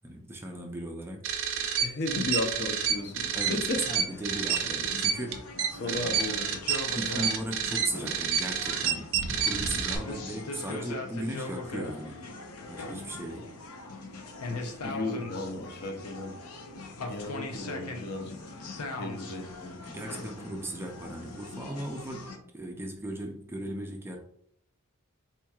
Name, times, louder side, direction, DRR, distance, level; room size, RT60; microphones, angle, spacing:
voice 1, 0.0-1.3 3.3-5.5 5.8-6.1 6.9-9.1 9.4-12.2 12.7-13.5 14.6-14.8 19.8-24.2, right 1 dB, 10° right, 2 dB, 0.4 m, -37 dB
sound 1, 1.2-10.0, right 7 dB, 60° right, 0.6 m, -29 dB
voice 2, 1.8-3.9 4.1-4.2 5.7-6.7 14.8-16.4 17.1-18.4 18.9-19.7, left 2 dB, 50° left, 4 dB, 0.6 m, -34 dB
sound 2, 2.9-22.4, left 2 dB, 90° left, 0.6 m, -41 dB
4.4 x 2.9 x 2.3 m, 0.68 s
head